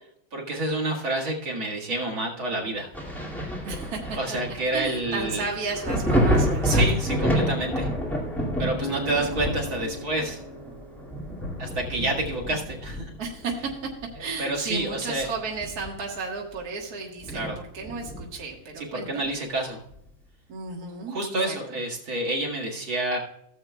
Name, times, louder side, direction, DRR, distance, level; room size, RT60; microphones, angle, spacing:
voice 1, 0.3-2.9 4.1-5.5 6.6-7.9 8.6-10.4 11.6-13.1 14.4-15.3 17.3-17.6 18.8-19.8 21.1-23.2, right 2 dB, 75° right, 0 dB, 2.7 m, -28 dB
Thunder, 2.9-14.3 14.7-16.2 16.5-16.6 17.2-18.5 19.9-20.0, equal, ahead, 2.0 m, -28 dB
voice 2, 3.6-4.2 4.7-6.8 13.2-13.7 14.2-17.5 17.7-19.3 20.5-21.2 21.5-21.8, right 4 dB, 50° right, -1 dB, 2.0 m, -33 dB
Acoustic guitar, 8.8-12.0, left 3 dB, 45° left, 1.0 m, -39 dB
16.5 x 7.7 x 2.3 m, 0.76 s
omnidirectional pair, 2.2 m